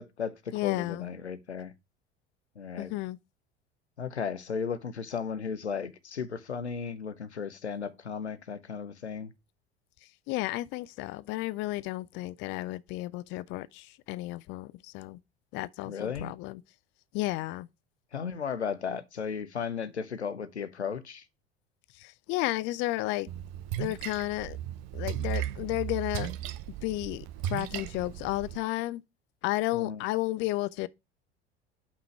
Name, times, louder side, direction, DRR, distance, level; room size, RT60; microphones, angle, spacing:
voice 1, 0.0-1.7 2.6-2.9 4.0-9.3 15.8-16.3 18.1-21.2 29.7-30.0, left 6 dB, 85° left, 0.7 m, -35 dB
voice 2, 0.5-1.1 2.8-3.2 10.3-15.2 15.5-16.6 17.1-17.7 22.0-23.3 23.8-24.6 24.9-26.3 26.8-29.0 29.4-30.9, left 18 dB, 35° left, 0.4 m, -32 dB
Splash splatter, 23.3-28.6, right 12 dB, 50° right, 0.7 m, -36 dB
5.7 x 4.8 x 5.7 m
figure-of-eight pair, 70°, 32 cm